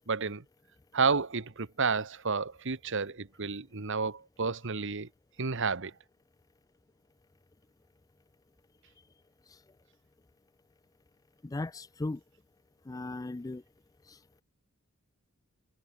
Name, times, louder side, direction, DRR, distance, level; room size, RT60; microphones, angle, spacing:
voice 1, 0.1-0.4 0.9-5.1 5.4-5.9, right 4 dB, 65° right, 1.4 m, -31 dB
voice 2, 11.4-12.2 12.9-13.6 14.1-14.2, left 2 dB, 15° left, 0.4 m, -37 dB
head